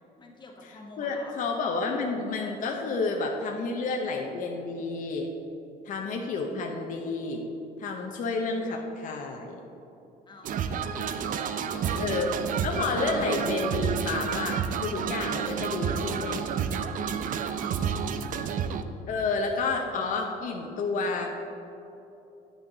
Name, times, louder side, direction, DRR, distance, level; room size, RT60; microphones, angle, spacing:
voice 1, 0.2-1.3 10.3-12.0 17.0-18.6, left 3 dB, 25° left, 0 dB, 1.1 m, -49 dB
voice 2, 1.0-5.3 5.8-7.4 7.8-9.6 12.0-12.3 12.6-16.4 19.1-21.3, left 3 dB, 50° left, 1 dB, 0.8 m, -30 dB
sound 1, 10.4-18.8, right 7 dB, 50° right, 0.5 m, -30 dB
9.8 x 6.1 x 3.9 m, 2.9 s
cardioid pair, 110°, 17 cm